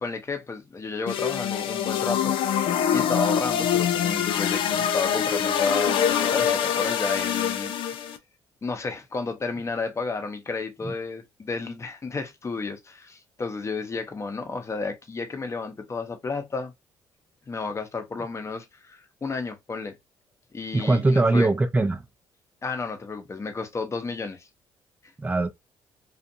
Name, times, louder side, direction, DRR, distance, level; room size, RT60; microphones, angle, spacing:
voice 1, 0.0-7.7 8.6-16.7 17.5-20.0 20.5-21.5 22.6-24.5, left 4 dB, 30° left, 0.8 m, -32 dB
sound 1, 1.1-8.2, left 8 dB, 70° left, 0.4 m, -24 dB
voice 2, 20.7-22.0 25.2-25.5, right 2 dB, 15° right, 0.6 m, -21 dB
2.5 x 2.4 x 2.7 m
supercardioid pair, 60°, 9 cm